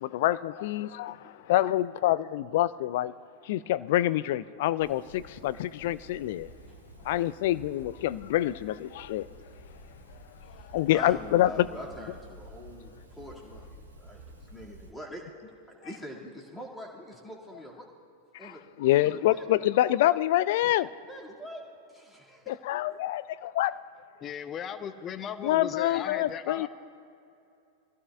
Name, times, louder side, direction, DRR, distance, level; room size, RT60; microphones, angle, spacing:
voice 1, 0.0-3.1 3.4-6.5 7.0-9.3 10.5-11.7 18.4-18.5 18.8-20.9 22.5-23.8 25.4-26.7, left 14 dB, 50° left, 0.3 m, -26 dB
voice 2, 1.1-1.5 6.7-7.1 10.5-15.5 15.8-17.9 18.4-18.6 19.0-19.5 21.1-22.6, equal, 5° left, 2.1 m, -44 dB
sound 1, 4.8-14.9, right 1 dB, 85° right, 1.8 m, -50 dB
voice 3, 24.2-26.7, left 8 dB, 30° left, 0.7 m, -37 dB
23.0 x 15.0 x 2.4 m
figure-of-eight pair, 90°, 0 cm